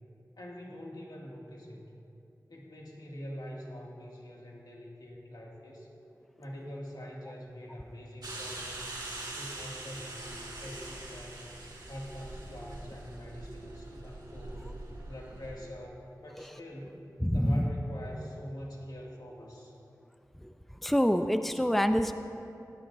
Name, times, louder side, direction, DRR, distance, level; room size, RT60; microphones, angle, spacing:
voice 1, 0.4-1.9 2.5-5.9 6.4-9.0 9.3-11.5 11.9-14.7 15.0-17.0 17.3-19.8, equal, 75° left, -3 dB, 2.3 m, -45 dB
sound 1, 8.2-15.6, right 2 dB, 80° right, 2.5 m, -43 dB
voice 2, 17.2-17.7 20.8-22.1, equal, 5° left, 8 dB, 0.6 m, -26 dB
18.5 x 15.5 x 2.7 m, 2.6 s
cardioid pair, 45°, 7 cm